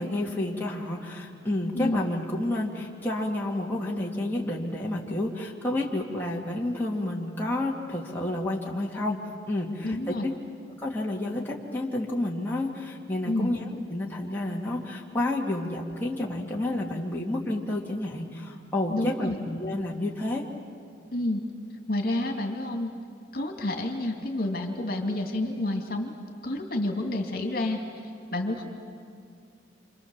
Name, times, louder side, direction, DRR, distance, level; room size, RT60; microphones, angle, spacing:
voice 1, 0.0-9.2 9.5-10.3 10.8-20.4, left 1 dB, 10° left, -3 dB, 2.0 m, -30 dB
voice 2, 9.8-10.2 13.3-13.5 18.9-19.4 21.1-21.4 21.9-22.9 23.3-26.1 26.4-27.8 28.3-28.6, left 1 dB, 50° left, 3 dB, 2.6 m, -29 dB
28.0 x 27.0 x 7.2 m, 2.3 s
head